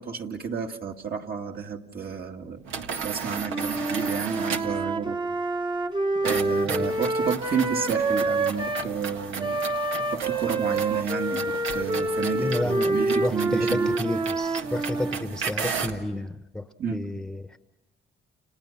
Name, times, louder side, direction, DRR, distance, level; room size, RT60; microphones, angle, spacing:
voice 1, 0.0-2.6 3.0-5.2 6.2-9.6 10.1-13.9 16.8-17.0, right 6 dB, 50° right, 2 dB, 2.1 m, -31 dB
sound 1, 2.7-4.8 6.2-16.0, right 6 dB, 85° right, 1.8 m, -35 dB
Wind instrument woodwind instrument, 3.5-8.9 9.4-15.3, right 2 dB, 25° right, 1.2 m, -27 dB
voice 2, 12.4-17.6, left 1 dB, 5° left, 9 dB, 1.1 m, -31 dB
30.0 x 29.5 x 5.8 m, 0.98 s
cardioid pair, 90°, 20 cm